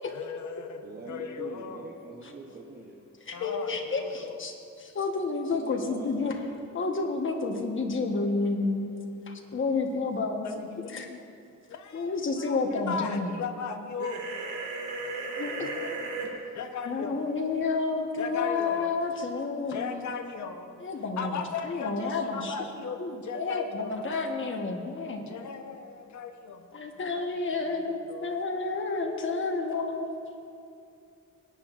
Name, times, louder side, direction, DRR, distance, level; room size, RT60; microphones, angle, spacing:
voice 1, 0.1-1.9 3.3-4.4 10.4-11.2 11.7-14.2 15.5-16.2 16.5-17.3 18.2-18.9 19.7-20.8 21.2-24.0 25.3-26.7 27.0-27.2 27.7-28.4, left 6 dB, 70° left, 6 dB, 0.9 m, -38 dB
voice 2, 0.8-3.1 4.8-4.9 5.5-6.4 8.1-8.2 9.2-9.4 11.5-11.6 14.6-15.1 15.5-16.5 17.1-17.2 26.8-27.4, right 3 dB, 35° right, -2 dB, 0.9 m, -46 dB
voice 3, 3.3-6.3 6.7-8.9 9.3-11.1 11.9-13.3 15.4-15.7 16.9-20.1 20.8-22.5 23.0-25.2 26.7-30.1, left 3 dB, 40° left, 2 dB, 1.2 m, -30 dB
sound 1, 14.0-16.3, right 3 dB, 75° right, 2.2 m, -34 dB
20.5 x 9.8 x 2.5 m, 2.5 s
wide cardioid pair, 135°, 30 cm